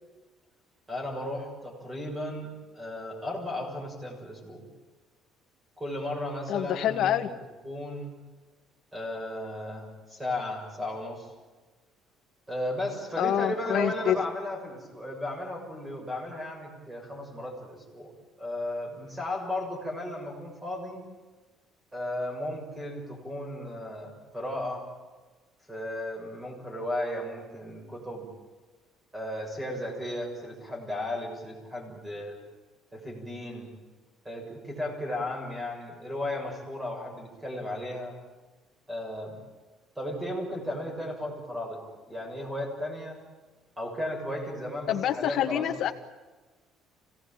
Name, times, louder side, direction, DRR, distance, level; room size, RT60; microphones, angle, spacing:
voice 1, 0.9-4.6 5.8-7.3 7.6-8.1 8.9-11.3 12.5-18.1 18.4-21.0 21.9-24.8 25.7-28.3 29.1-32.4 32.9-33.7 34.2-38.1 38.9-39.4 39.9-41.8 42.1-43.2 43.8-45.9, left 1 dB, 10° right, 1 dB, 6.8 m, -35 dB
voice 2, 6.5-7.3 13.2-14.1 44.9-45.9, left 11 dB, 50° left, 6 dB, 1.7 m, -26 dB
25.5 x 18.0 x 8.9 m, 1.3 s
cardioid pair, 160°, 0 cm